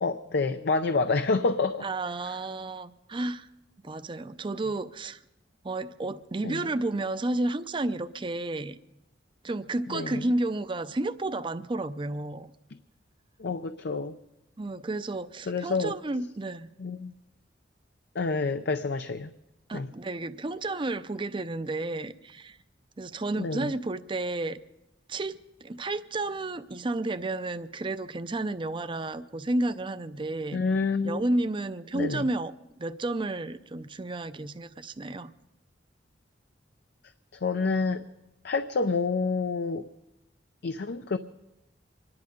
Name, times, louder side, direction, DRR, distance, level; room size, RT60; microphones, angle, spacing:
voice 1, 0.0-1.9 2.3-2.4 6.4-6.6 9.9-10.2 13.4-14.1 15.5-15.9 16.8-17.1 18.1-19.3 19.7-19.9 23.4-23.7 30.5-31.2 31.9-32.3 37.4-38.0 38.4-39.9 40.6-41.2, left 4 dB, 65° left, 9 dB, 0.5 m, -28 dB
voice 2, 1.8-3.5 3.8-5.2 5.6-8.8 9.4-12.5 14.6-16.7 19.7-22.6 23.0-24.6 25.1-30.6 31.0-32.5 32.8-35.3, right 2 dB, 30° right, 11 dB, 0.6 m, -31 dB
25.5 x 11.0 x 5.2 m, 0.90 s
head